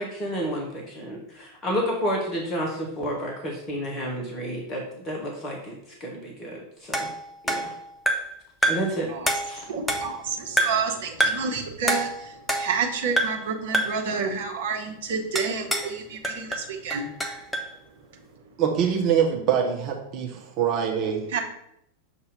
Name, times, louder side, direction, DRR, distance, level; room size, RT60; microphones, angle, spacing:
voice 1, 0.0-7.1 7.4-7.7 8.6-9.1 9.4-9.6, equal, 25° left, -1 dB, 1.2 m, -30 dB
sound 1, 6.9-8.4 8.6-9.0 9.3-10.2 10.6-10.9 11.2-11.5 11.9-12.9 13.2-13.5 13.7-14.1 15.4-16.0 16.2-17.7, right 1 dB, 5° left, 0.7 m, -27 dB
voice 2, 9.7-17.1 21.3-21.4, right 5 dB, 55° right, 2 dB, 1.0 m, -29 dB
voice 3, 18.6-21.3, right 8 dB, 40° right, 1 dB, 0.9 m, -24 dB
6.8 x 2.8 x 5.4 m, 0.77 s
figure-of-eight pair, 90°, 0 cm